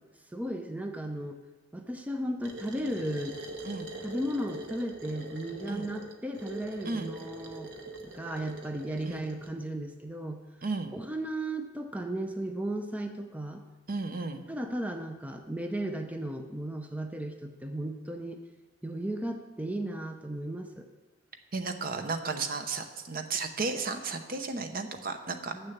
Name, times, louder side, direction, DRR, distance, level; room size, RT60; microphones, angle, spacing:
voice 1, 0.3-1.4 1.7-3.4 4.0-7.7 8.0-10.4 10.9-13.6 14.5-18.4 18.8-20.9 25.5-25.7, right 1 dB, 10° right, 4 dB, 0.5 m, -35 dB
sound 1, 2.4-9.5, right 1 dB, 75° right, 1.1 m, -43 dB
voice 2, 10.6-10.9 13.9-14.4 21.5-25.5, right 4 dB, 50° right, 7 dB, 0.8 m, -34 dB
8.1 x 6.6 x 7.2 m, 1.2 s
head